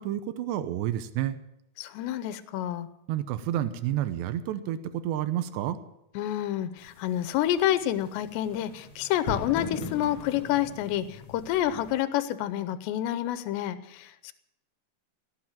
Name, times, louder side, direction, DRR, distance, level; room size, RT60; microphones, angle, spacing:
voice 1, 0.0-1.4 3.1-5.8, right 12 dB, 85° right, 11 dB, 3.0 m, -30 dB
voice 2, 1.8-2.9 6.2-14.3, left 12 dB, 85° left, 13 dB, 3.0 m, -28 dB
sound 1, 6.8-11.9, left 4 dB, 55° left, 1.5 m, -40 dB
17.5 x 8.4 x 9.0 m, 0.83 s
omnidirectional pair, 4.9 m